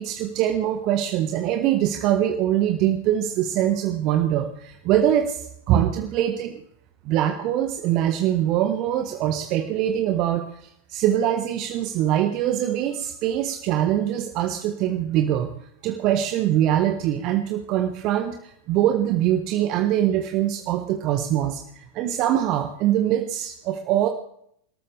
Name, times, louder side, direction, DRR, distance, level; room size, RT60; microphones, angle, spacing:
voice 1, 0.0-6.6 7.0-15.5 15.8-24.1, right 11 dB, 40° right, 5 dB, 1.3 m, -23 dB
28.5 x 13.5 x 3.4 m, 0.70 s
figure-of-eight pair, 90°, 0 cm